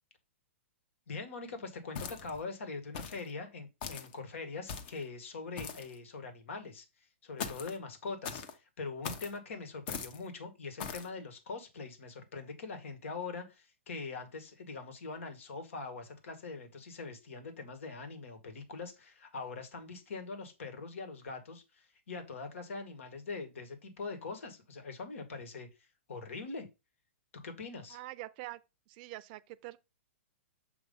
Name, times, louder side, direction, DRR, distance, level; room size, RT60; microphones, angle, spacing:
voice 1, 1.1-6.9 7.2-25.7 26.1-26.7 27.3-28.0, left 4 dB, 80° left, 2.0 m, -43 dB
sound 1, 1.9-2.4 2.9-3.3 3.8-4.1 4.7-5.0 5.6-5.9 7.4-7.8 8.2-8.5 9.0-9.3 9.9-10.2 10.8-11.1, left 6 dB, 50° left, 1.2 m, -40 dB
voice 2, 27.9-28.6 28.9-29.8, right 18 dB, 45° right, 0.5 m, -44 dB
7.2 x 3.1 x 5.5 m
hypercardioid pair, 140°, 7 cm